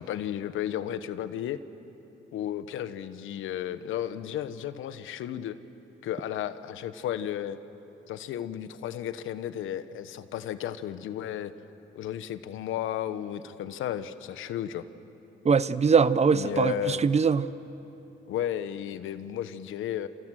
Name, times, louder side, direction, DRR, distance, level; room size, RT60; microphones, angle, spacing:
voice 1, 0.0-1.6 2.3-5.6 6.0-7.6 8.1-11.5 11.9-14.9 16.3-17.0 18.3-20.1, left 11 dB, 85° left, 12 dB, 1.1 m, -33 dB
voice 2, 15.4-17.5, right 5 dB, 35° right, 15 dB, 0.8 m, -22 dB
29.0 x 27.5 x 6.4 m, 3.0 s
cardioid pair, 90°, 20 cm